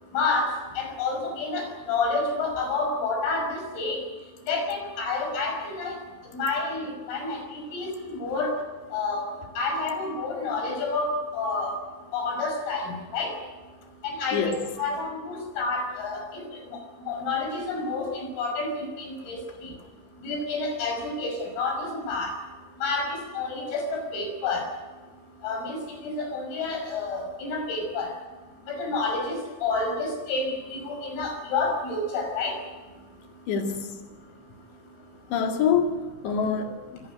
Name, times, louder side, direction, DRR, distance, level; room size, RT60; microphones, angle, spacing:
voice 1, 0.1-0.5 0.8-4.0 4.5-6.0 6.3-8.6 8.9-9.3 9.6-11.7 12.1-13.3 14.0-16.4 16.7-16.8 17.1-19.4 20.2-22.3 22.8-24.7 25.4-28.1 28.7-32.6, left 3 dB, 80° left, 4 dB, 8.2 m, -29 dB
voice 2, 14.3-14.7 33.5-33.9 35.3-37.0, left 6 dB, 65° left, 4 dB, 4.1 m, -26 dB
24.0 x 16.5 x 9.4 m, 1.2 s
omnidirectional pair, 5.9 m